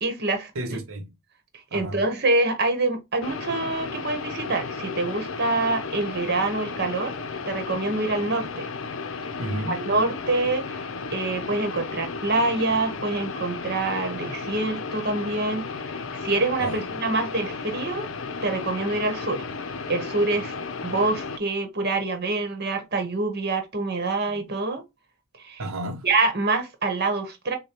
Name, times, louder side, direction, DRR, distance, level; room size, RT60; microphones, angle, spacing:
voice 1, 0.0-0.5 1.7-7.1 7.5-8.7 9.7-10.6 11.1-15.6 16.1-18.1 18.4-19.4 19.9-20.5 20.8-24.8 25.4-25.6 26.0-27.6, right 2 dB, 50° right, 1.1 m, -26 dB
voice 2, 0.5-1.1 1.7-2.0 9.4-9.8 16.6-16.9 25.6-26.1, right 1 dB, 75° right, 0.8 m, -32 dB
sound 1, 3.2-21.4, left 4 dB, 65° left, 0.6 m, -34 dB
6.4 x 2.2 x 2.9 m
head